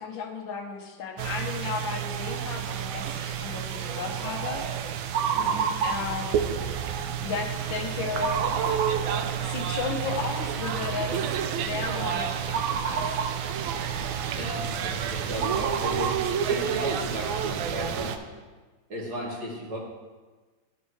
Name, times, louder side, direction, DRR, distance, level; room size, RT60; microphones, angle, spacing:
voice 1, 0.0-4.6 5.8-6.6 7.2-8.5 9.4-13.2 14.3-14.6 14.9-15.4, left 5 dB, 75° left, 0 dB, 1.7 m, -34 dB
sound 1, 1.2-18.2, right 8 dB, 80° right, 1.4 m, -29 dB
voice 2, 5.3-5.7 14.3-18.2 18.9-19.8, equal, 50° right, -4 dB, 2.2 m, -35 dB
13.0 x 5.3 x 3.2 m, 1.3 s
omnidirectional pair, 2.2 m